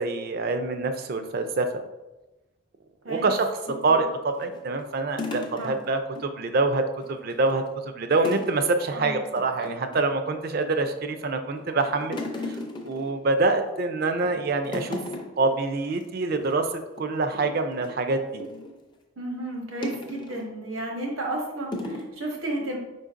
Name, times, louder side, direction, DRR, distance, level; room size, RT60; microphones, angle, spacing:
voice 1, 0.0-1.7 3.1-3.5 3.8-6.8 7.1-12.2 12.5-12.6 12.8-15.0 15.4-18.4, right 3 dB, 45° right, 8 dB, 0.4 m, -25 dB
sound 1, 3.7-6.3 6.6-6.7 7.0-7.7 8.2-8.6 8.9-9.0 9.4-10.2 10.7-11.2 11.6-13.7 14.1-14.4 14.6-15.5 15.9-16.0 16.3-16.5 17.0-18.8 19.8-20.5 21.1-21.3 21.7-22.1, left 2 dB, 20° left, 0.4 m, -36 dB
voice 2, 8.9-9.2 19.2-22.8, right 1 dB, 90° right, 0 dB, 1.1 m, -32 dB
5.0 x 3.9 x 2.5 m, 1.1 s
head